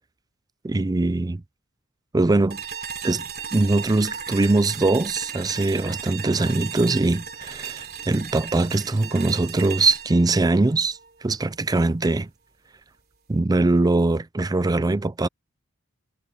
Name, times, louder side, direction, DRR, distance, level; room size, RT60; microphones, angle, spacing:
voice 1, 0.6-1.4 2.1-2.6 3.0-3.2 3.5-12.3 13.3-15.3, right 2 dB, 15° right, 0.4 m, -22 dB
sound 1, 2.5-11.5, right 7 dB, 45° right, 3.2 m, -36 dB
head